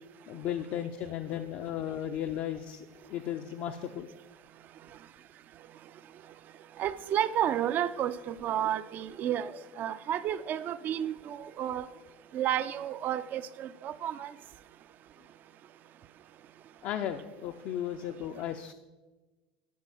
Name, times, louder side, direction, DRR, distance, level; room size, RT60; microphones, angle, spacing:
voice 1, 0.3-4.1 16.8-18.7, left 10 dB, 60° left, 0.5 m, -35 dB
voice 2, 6.8-11.9 12.3-14.3, right 10 dB, 45° right, 0.5 m, -31 dB
11.5 x 4.8 x 6.1 m
hypercardioid pair, 90°, 4 cm